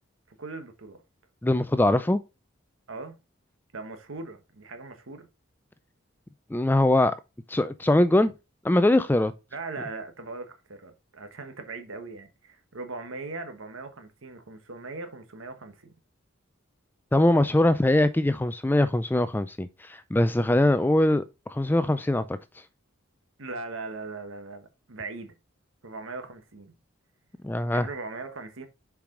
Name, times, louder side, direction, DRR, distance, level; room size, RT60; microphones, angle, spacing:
voice 1, 0.3-1.0 2.9-3.2 3.7-5.3 9.5-15.9 23.4-25.3 25.8-26.7 27.6-28.7, right 3 dB, 75° right, 1.2 m, -39 dB
voice 2, 1.4-2.2 6.5-7.1 7.5-8.3 8.6-9.3 17.1-21.2 21.5-22.4 27.4-27.9, left 1 dB, 10° left, 0.3 m, -22 dB
6.9 x 4.8 x 3.8 m
head